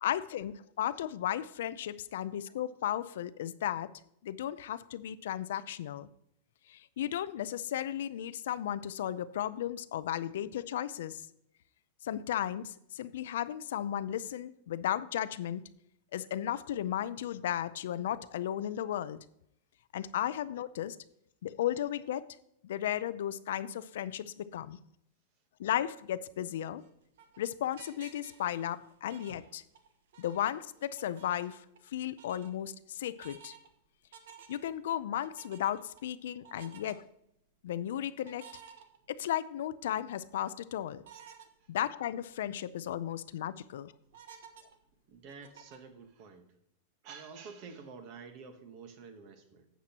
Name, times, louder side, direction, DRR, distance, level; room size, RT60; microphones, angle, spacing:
voice 1, 0.0-3.9 4.2-6.1 6.7-11.2 12.0-15.6 16.1-19.2 19.9-21.0 21.4-22.3 22.6-24.8 25.6-26.8 27.4-29.6 30.2-31.6 31.9-33.5 34.5-37.0 37.6-38.5 39.1-41.0 41.7-43.9, left 11 dB, 65° left, 15 dB, 0.4 m, -35 dB
sound 1, 26.7-29.9 30.1-31.9 32.2-32.5 33.0-33.7 34.1-34.8 35.2-36.0 36.4-36.9 38.2-39.5 39.9-40.0 41.0-41.5 42.0-42.1 42.3-42.4 42.9-43.3 44.1-45.9, right 7 dB, 65° right, 1.3 m, -54 dB
voice 2, 45.1-46.5 47.0-49.7, right 5 dB, 30° right, 8 dB, 1.1 m, -49 dB
12.0 x 8.1 x 2.9 m, 0.75 s
supercardioid pair, 180°, 0 cm